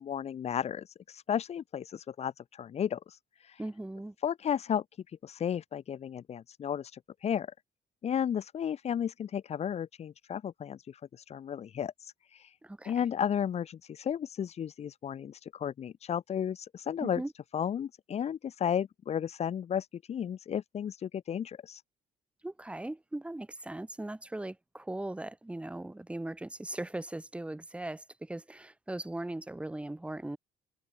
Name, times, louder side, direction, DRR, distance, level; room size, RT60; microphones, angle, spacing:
voice 1, 0.0-3.6 4.2-7.5 8.0-12.6 12.8-17.2 17.5-21.8, left 8 dB, 40° left, 0.7 m, -34 dB
voice 2, 3.6-4.1 12.6-13.0 17.0-17.3 22.4-30.4, right 1 dB, 5° right, 1.3 m, -39 dB
cardioid pair, 110°, 17 cm